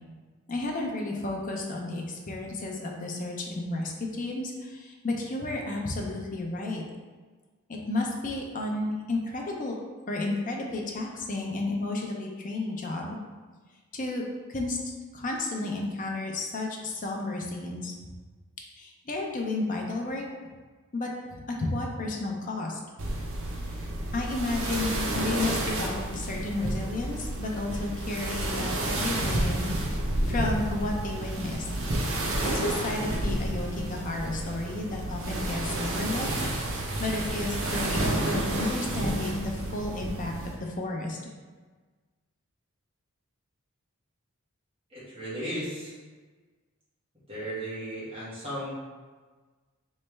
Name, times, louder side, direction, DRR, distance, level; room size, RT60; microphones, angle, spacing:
voice 1, 0.5-6.8 7.7-9.7 10.1-13.2 13.9-14.2 14.5-14.8 15.1-17.9 18.7-20.2 20.9-22.8 23.7-23.8 24.1-29.7 30.2-31.7 32.5-36.3 36.6-41.2, left 2 dB, 40° left, 0 dB, 0.5 m, -32 dB
sound 1, 23.0-40.6, right 1 dB, 65° right, 0.6 m, -30 dB
voice 2, 44.9-45.9 47.3-48.8, equal, 25° right, -10 dB, 1.4 m, -35 dB
3.2 x 3.2 x 3.2 m, 1.4 s
head